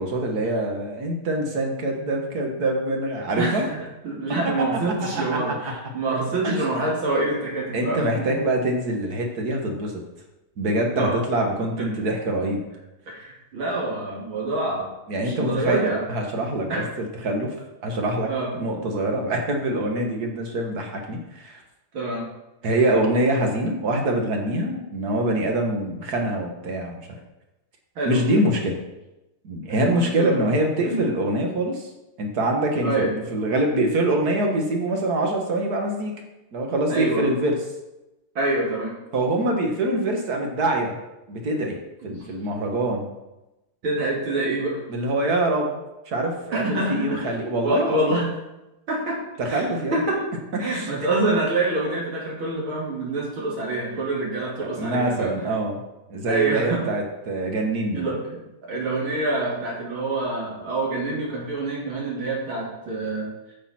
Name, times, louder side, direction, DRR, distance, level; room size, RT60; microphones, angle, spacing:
voice 1, 0.0-3.7 5.3-5.5 7.7-9.9 10.6-12.7 15.1-15.8 16.1-17.5 17.8-21.6 22.6-27.0 28.1-28.8 29.4-31.9 32.2-36.1 36.5-37.6 39.1-41.0 41.3-41.8 42.0-43.1 44.9-45.8 46.1-48.2 49.4-50.0 50.7-50.9 54.6-55.8 56.1-58.1, right 1 dB, 50° right, 2 dB, 1.8 m, -24 dB
voice 2, 3.4-8.3 11.0-11.2 13.1-14.9 15.2-16.0 16.7-16.9 18.3-18.5 21.9-22.2 27.9-28.2 29.7-30.4 30.8-31.0 32.8-33.1 36.9-37.3 38.3-38.9 42.0-42.2 43.8-44.8 46.5-48.3 48.9-49.2 49.5-50.2 50.6-55.5 56.3-56.8 57.9-63.5, right 2 dB, 70° right, -4 dB, 3.4 m, -26 dB
8.7 x 7.8 x 4.4 m, 0.96 s
omnidirectional pair, 2.3 m